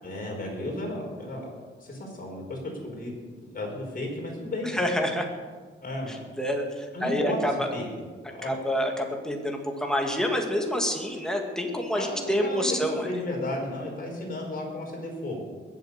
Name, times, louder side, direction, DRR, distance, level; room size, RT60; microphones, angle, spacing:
voice 1, 0.0-1.5 1.8-3.1 3.5-4.8 5.8-6.1 6.9-7.9 8.3-8.8 11.9-15.5, left 1 dB, 45° left, -1 dB, 5.3 m, -33 dB
voice 2, 4.7-5.3 6.4-6.6 7.0-7.7 8.4-13.1, equal, 5° left, 2 dB, 2.3 m, -27 dB
21.0 x 7.9 x 6.8 m, 1.5 s
wide cardioid pair, 120°, 20 cm